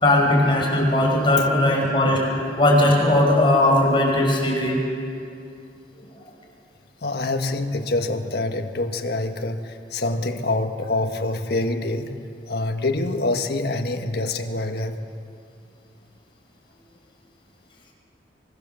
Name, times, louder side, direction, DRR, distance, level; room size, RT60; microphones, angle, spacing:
voice 1, 0.0-4.8, left 1 dB, 30° left, -1 dB, 5.4 m, -18 dB
voice 2, 7.0-12.1 12.5-15.1, left 2 dB, 60° left, 5 dB, 1.6 m, -26 dB
25.0 x 22.5 x 7.0 m, 2.5 s
head